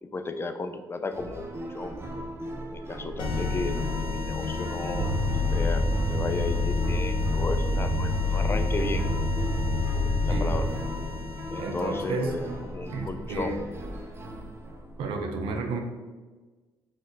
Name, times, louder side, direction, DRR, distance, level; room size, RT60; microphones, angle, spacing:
voice 1, 0.0-1.4 1.7-2.0 2.7-5.1 5.5-9.0 10.2-10.7 11.5-13.5, left 3 dB, 25° left, 8 dB, 0.4 m, -34 dB
sound 1, 1.1-15.0, right 1 dB, 30° right, 0.6 m, -38 dB
sound 2, 3.2-12.6, left 4 dB, 65° left, 0.7 m, -32 dB
sound 3, 4.9-10.7, left 1 dB, 60° right, 1.1 m, -27 dB
voice 2, 11.6-12.3 12.9-13.6 15.0-15.8, right 3 dB, 75° right, 3 dB, 0.7 m, -31 dB
4.1 x 3.2 x 4.0 m, 1.3 s
cardioid pair, 90°, 9 cm